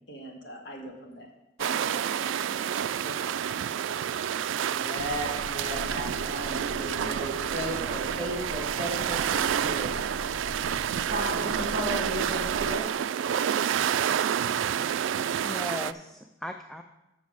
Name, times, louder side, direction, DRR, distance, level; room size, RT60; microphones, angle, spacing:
voice 1, 0.1-1.3 1.6-2.7 3.0-3.4, right 1 dB, 65° left, 1 dB, 1.8 m, -43 dB
sound 1, 1.6-15.9, right 9 dB, 85° right, 0.3 m, -29 dB
voice 2, 4.7-9.9 11.1-12.8, right 1 dB, 40° right, 0 dB, 2.2 m, -35 dB
sound 2, 5.0-12.8, left 2 dB, 80° left, 0.4 m, -42 dB
voice 3, 15.2-16.8, left 1 dB, ahead, 5 dB, 0.3 m, -38 dB
7.2 x 7.1 x 6.3 m, 0.97 s
head